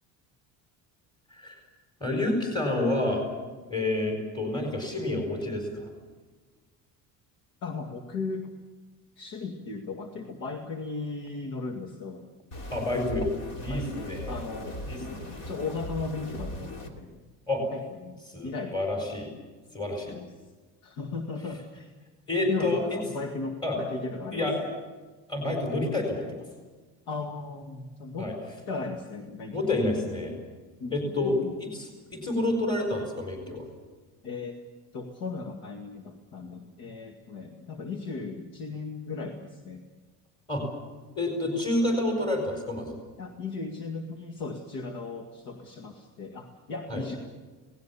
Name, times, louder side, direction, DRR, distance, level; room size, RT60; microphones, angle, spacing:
voice 1, 2.0-3.3 3.7-5.9 12.7-13.3 13.6-14.3 14.9-15.4 17.5-17.6 18.3-19.3 19.7-20.1 22.3-23.0 23.6-23.8 24.3-24.6 25.3-26.4 28.2-28.3 29.5-30.3 30.9-33.7 40.5-40.6 41.1-43.0 46.9-47.0, left 2 dB, 15° left, 2 dB, 4.5 m, -29 dB
voice 2, 7.6-8.5 9.2-12.3 13.7-14.8 15.4-17.2 17.7-18.7 20.1-20.3 20.8-21.9 22.5-24.5 27.1-28.3 28.7-29.9 30.8-31.5 34.2-34.6 34.9-39.8 43.2-47.2, left 4 dB, 65° left, 4 dB, 2.3 m, -36 dB
sound 1, 12.5-16.9, left 1 dB, 50° left, 3.1 m, -38 dB
28.0 x 19.0 x 7.1 m, 1.3 s
cardioid pair, 180°, 34 cm